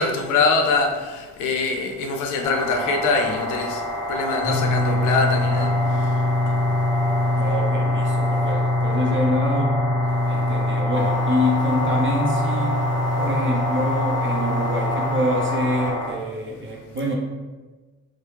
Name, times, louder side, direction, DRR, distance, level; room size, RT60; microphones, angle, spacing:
voice 1, 0.0-7.3 10.3-10.4, left 3 dB, 80° left, 3 dB, 0.5 m, -24 dB
sound 1, 2.4-16.1, equal, 15° left, 0.6 m, -29 dB
sound 2, 4.4-15.9, left 2 dB, 10° right, 1.0 m, -24 dB
voice 2, 7.4-9.8 10.3-12.8 13.2-17.1, left 1 dB, 40° right, -1 dB, 0.6 m, -26 dB
sound 3, 10.9-15.9, left 1 dB, 70° right, 0.9 m, -29 dB
2.9 x 2.0 x 3.2 m, 1.3 s
cardioid pair, 90°, 30 cm